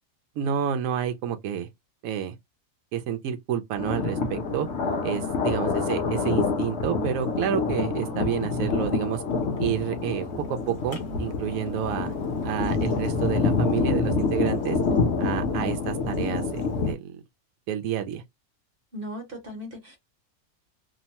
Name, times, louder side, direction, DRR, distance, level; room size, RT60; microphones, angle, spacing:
voice 1, 0.4-1.7 2.0-2.3 2.9-4.7 5.0-9.2 9.6-12.1 12.4-14.8 15.2-17.2 17.7-18.2, right 9 dB, 75° right, 1.0 m, -29 dB
Thunder, 3.8-16.9, left 4 dB, 55° left, 0.9 m, -27 dB
voice 2, 4.9-5.4 18.9-20.0, equal, 45° right, 1.1 m, -38 dB
3.0 x 2.0 x 2.8 m
omnidirectional pair, 1.5 m